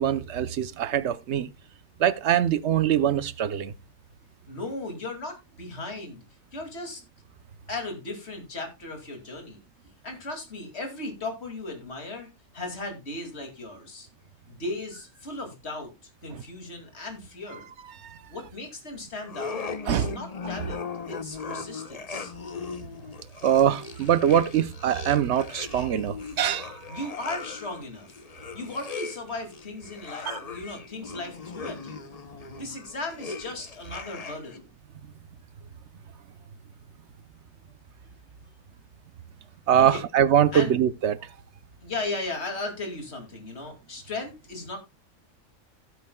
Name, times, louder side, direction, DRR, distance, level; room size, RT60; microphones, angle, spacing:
voice 1, 0.0-1.5 2.0-3.7 18.0-18.1 19.9-20.1 23.4-27.0 30.3-30.4 39.7-41.2, right 10 dB, 65° right, 0.9 m, -23 dB
voice 2, 4.5-6.2 6.5-7.0 7.7-9.6 10.0-12.3 12.5-14.1 14.5-15.9 16.2-17.7 18.3-22.3 26.9-28.1 28.5-32.0 32.6-34.6 39.8-40.0 40.5-40.7 41.8-44.8, left 2 dB, 50° left, 2.7 m, -36 dB
sound 1, 19.2-34.6, left 5 dB, 35° left, 0.7 m, -39 dB
15.5 x 8.2 x 2.2 m
omnidirectional pair, 1.4 m